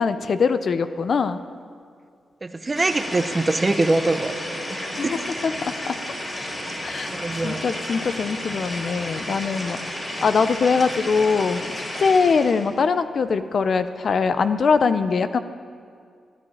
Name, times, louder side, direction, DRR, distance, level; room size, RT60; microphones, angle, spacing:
voice 1, 0.0-1.4 5.0-5.2 5.4-5.9 6.8-7.1 7.4-9.8 10.2-11.6 12.0-15.4, left 5 dB, 60° left, 11 dB, 0.6 m, -22 dB
voice 2, 2.4-4.3 4.7-5.1 7.1-7.7, right 2 dB, 30° right, 10 dB, 0.9 m, -23 dB
sound 1, 2.7-12.7, left 1 dB, 25° left, 4.1 m, -32 dB
12.0 x 11.0 x 8.7 m, 2.2 s
cardioid pair, 65°, 0 cm